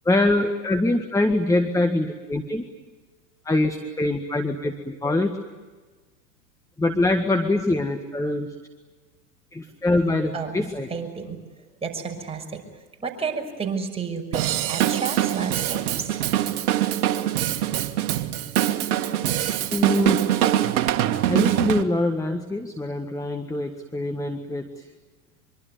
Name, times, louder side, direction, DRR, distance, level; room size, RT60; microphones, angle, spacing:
voice 1, 0.1-2.6 3.5-5.3 6.8-8.5 9.5-10.9 19.7-20.2 21.3-24.9, left 2 dB, 5° left, 6 dB, 1.8 m, -24 dB
voice 2, 10.3-11.4 11.8-12.6 13.0-16.2, right 5 dB, 10° right, 1 dB, 6.1 m, -31 dB
Drum kit / Drum, 14.3-21.8, right 12 dB, 60° right, 1.8 m, -23 dB
24.5 x 24.0 x 9.5 m, 1.3 s
hypercardioid pair, 95°, 49 cm